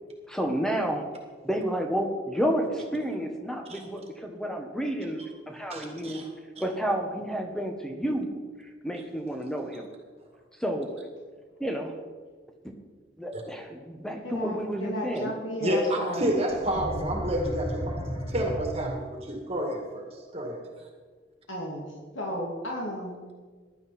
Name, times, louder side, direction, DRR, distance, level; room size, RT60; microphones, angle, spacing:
voice 1, 0.3-1.0 1.4-6.2 6.6-8.3 8.8-9.9 10.6-10.9 11.6-11.9 13.2-15.3, equal, 5° left, 3 dB, 1.2 m, -30 dB
voice 2, 5.7-6.3 6.6-6.7 13.3-13.4 15.6-20.8, right 1 dB, 30° right, 1 dB, 2.0 m, -30 dB
voice 3, 14.2-16.3 16.7-17.0 21.5-21.8 22.1-23.2, equal, 90° left, -2 dB, 2.6 m, -34 dB
sound 1, 16.5-19.3, equal, 30° left, 3.7 m, -34 dB
15.5 x 11.5 x 4.3 m, 1.5 s
head